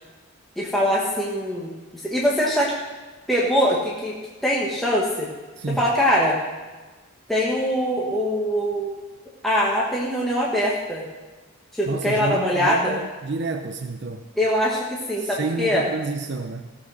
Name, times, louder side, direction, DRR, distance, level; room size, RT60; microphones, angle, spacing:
voice 1, 0.6-1.7 2.0-2.7 3.3-4.1 4.4-5.3 5.8-6.4 7.3-8.9 9.4-11.1 11.7-13.0 14.4-15.8, equal, ahead, -6 dB, 1.4 m, -22 dB
voice 2, 5.6-5.9 11.9-14.3 15.2-16.8, right 3 dB, 55° right, 6 dB, 0.6 m, -29 dB
17.0 x 6.0 x 6.3 m, 1.3 s
head